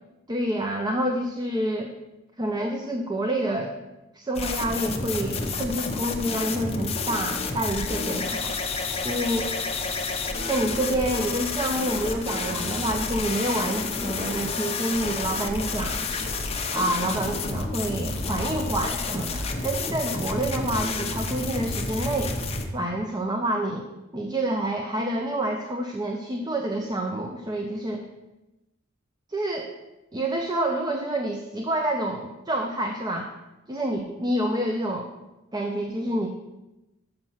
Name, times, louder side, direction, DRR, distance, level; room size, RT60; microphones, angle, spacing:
voice 1, 0.3-1.9 2.4-3.8 4.1-8.6 9.0-9.5 10.4-16.1 16.7-22.4 22.7-23.8 24.1-28.1 29.3-29.7 30.1-33.3 33.7-35.1 35.5-36.3, right 1 dB, 20° right, 3 dB, 0.5 m, -28 dB
sound 1, 4.4-22.7, left 3 dB, 30° left, 0.7 m, -30 dB
6.5 x 6.1 x 5.6 m, 1.0 s
head